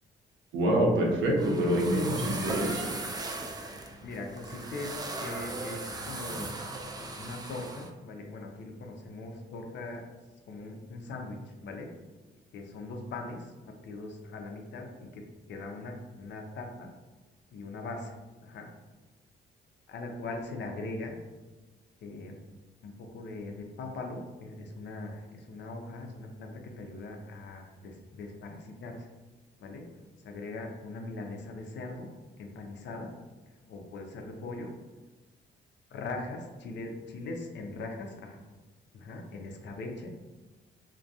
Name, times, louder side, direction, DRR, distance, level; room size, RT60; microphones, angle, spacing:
voice 1, 0.5-2.8, right 1 dB, 85° right, -1 dB, 0.7 m, -26 dB
sound 1, 1.0-7.9, right 2 dB, 20° right, 0.3 m, -38 dB
voice 2, 4.0-6.6 7.0-10.1 10.5-11.9 12.5-15.2 15.5-16.9 17.5-18.7 19.9-21.1 22.0-22.3 22.8-29.1 29.6-29.9 30.2-32.1 32.4-33.1 33.7-34.7 35.9-38.4 38.9-40.1, left 2 dB, 65° left, 2 dB, 0.5 m, -40 dB
2.3 x 2.2 x 2.6 m, 1.2 s
cardioid pair, 90°, 20 cm